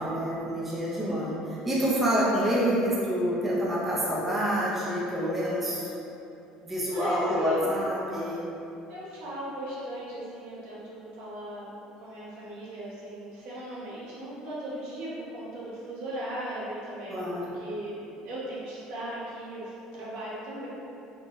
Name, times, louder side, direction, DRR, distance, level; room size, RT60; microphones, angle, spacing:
voice 1, 0.0-5.9 6.6-8.5 17.1-17.4, equal, 10° right, -7 dB, 0.3 m, -27 dB
voice 2, 0.9-1.4 6.9-7.7 8.9-11.7 12.0-18.0 18.2-20.7, right 1 dB, 70° right, -8 dB, 0.9 m, -37 dB
3.6 x 2.0 x 2.4 m, 2.9 s
cardioid pair, 165°, 2 cm